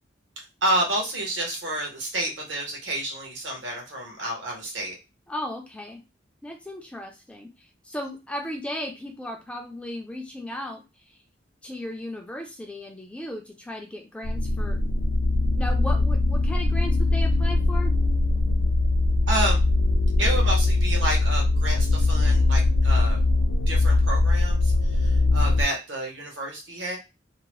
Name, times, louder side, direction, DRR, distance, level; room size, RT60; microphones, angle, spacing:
voice 1, 0.6-5.0 19.3-19.6 20.2-23.2 23.7-27.0, right 1 dB, 75° right, 0 dB, 1.0 m, -29 dB
voice 2, 5.3-6.0 6.4-7.5 7.8-10.8 11.6-14.8 15.6-17.9, left 1 dB, 5° left, 1 dB, 0.3 m, -35 dB
sound 1, 14.2-25.6, left 2 dB, 75° left, 0.4 m, -21 dB
2.8 x 2.1 x 3.0 m, 0.27 s
head